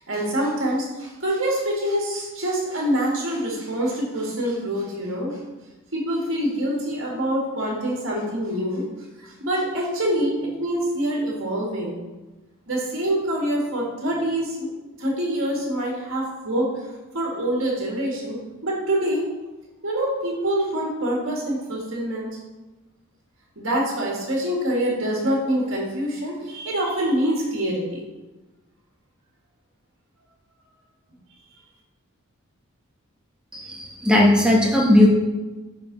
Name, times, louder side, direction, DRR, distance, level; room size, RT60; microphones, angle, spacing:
voice 1, 0.1-5.4 5.9-8.9 9.2-12.0 12.7-14.7 15.0-16.7 17.1-18.4 18.6-19.3 19.8-22.3 23.6-28.0, right 1 dB, 60° right, -3 dB, 1.8 m, -25 dB
voice 2, 33.5-35.1, left 1 dB, 5° right, -2 dB, 1.0 m, -17 dB
9.9 x 4.0 x 4.0 m, 1.2 s
head